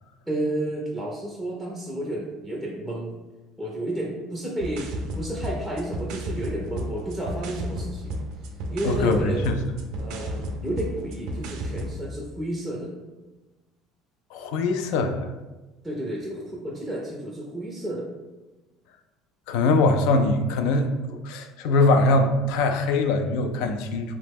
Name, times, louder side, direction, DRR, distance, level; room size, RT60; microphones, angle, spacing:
voice 1, 0.3-3.2 3.6-8.2 8.7-9.5 10.0-12.9 15.8-18.1, right 1 dB, ahead, -3 dB, 0.4 m, -31 dB
sound 1, 4.6-12.0, right 1 dB, 70° right, 0.4 m, -33 dB
voice 2, 8.8-9.6 14.3-15.3 19.5-24.1, left 2 dB, 80° left, 7 dB, 0.3 m, -22 dB
3.0 x 2.1 x 3.3 m, 1.1 s
cardioid pair, 135°, 0 cm